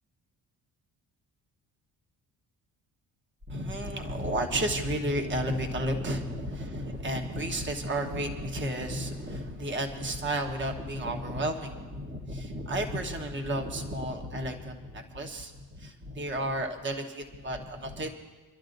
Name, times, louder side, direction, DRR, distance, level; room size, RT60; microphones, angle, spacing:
voice 1, 3.5-15.5 15.8-18.1, right 1 dB, 30° right, 3 dB, 1.2 m, -32 dB
28.5 x 12.0 x 2.6 m, 1.3 s
cardioid pair, 130°, 38 cm